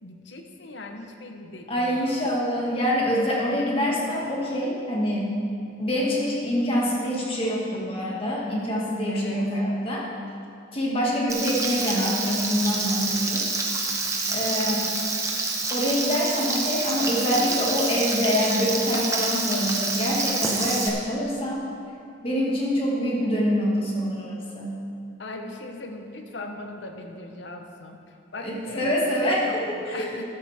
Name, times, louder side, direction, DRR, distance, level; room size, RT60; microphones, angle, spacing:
voice 1, 0.0-2.2 9.1-9.4 14.3-14.7 25.2-30.2, left 2 dB, 65° left, 4 dB, 1.1 m, -39 dB
voice 2, 1.7-5.3 5.8-10.1 10.7-13.6 14.3-15.1 15.7-21.6 22.2-24.8 28.4-30.1, equal, 30° left, -4 dB, 2.2 m, -25 dB
Frying (food), 11.3-20.9, right 3 dB, 15° right, 1.1 m, -27 dB
13.5 x 12.0 x 3.6 m, 2.4 s
head